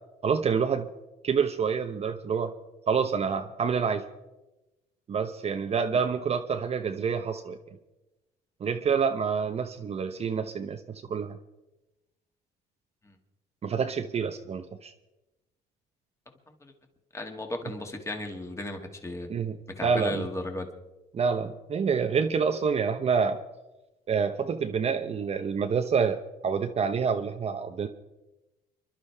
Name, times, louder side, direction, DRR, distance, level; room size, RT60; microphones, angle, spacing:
voice 1, 0.2-0.9 1.2-2.5 2.9-4.0 5.1-7.6 8.6-11.4 13.6-14.9 19.3-20.3 21.1-23.4 24.1-27.9, right 6 dB, 40° right, 6 dB, 0.8 m, -27 dB
voice 2, 17.1-19.3 19.8-20.7, left 1 dB, 15° left, 4 dB, 2.0 m, -35 dB
29.5 x 11.5 x 3.5 m, 1.0 s
cardioid pair, 110°, 17 cm